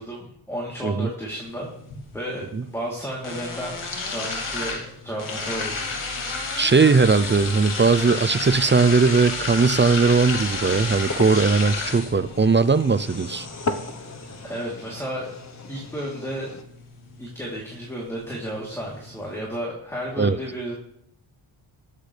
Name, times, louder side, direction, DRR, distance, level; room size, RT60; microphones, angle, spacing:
voice 1, 0.0-1.7 2.1-3.8 4.1-5.8 14.4-15.3 15.7-16.5 17.2-20.7, equal, 5° left, 3.3 m, -32 dB
sound 1, 1.4-19.4, left 3 dB, 80° left, 2.9 m, -33 dB
sound 2, 5.9-16.6, left 3 dB, 35° left, 1.1 m, -39 dB
voice 2, 6.3-13.5 20.2-20.4, right 4 dB, 25° right, 0.5 m, -19 dB
21.5 x 8.2 x 3.4 m
wide cardioid pair, 95°, 49 cm